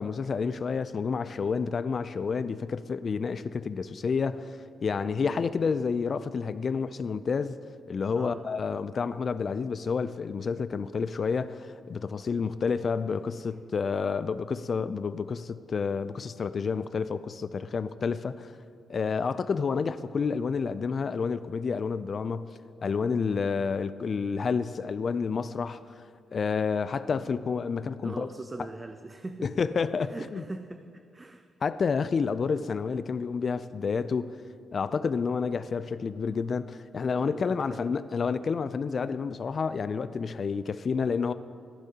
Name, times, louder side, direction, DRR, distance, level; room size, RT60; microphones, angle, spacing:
voice 1, 0.0-7.6 7.9-18.5 18.9-22.5 22.8-26.0 26.3-28.3 29.4-30.4 31.6-34.4 34.7-41.3, left 5 dB, 55° left, 0.3 m, -29 dB
voice 2, 8.1-8.5 28.0-29.5 30.0-31.5 37.2-37.9, right 2 dB, 25° right, 0.4 m, -41 dB
13.5 x 11.5 x 2.9 m
supercardioid pair, 60°, 0 cm